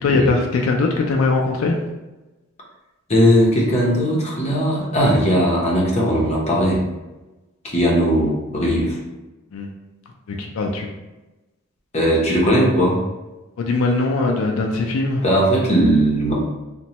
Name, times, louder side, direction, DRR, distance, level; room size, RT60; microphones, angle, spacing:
voice 1, 0.0-1.8 9.5-9.7 10.3-10.9 13.6-15.2, left 3 dB, 85° left, 1 dB, 0.4 m, -20 dB
voice 2, 3.1-6.8 7.6-9.0 11.9-13.0 15.2-16.3, equal, 35° left, -4 dB, 0.7 m, -18 dB
3.0 x 2.1 x 2.8 m, 1.1 s
head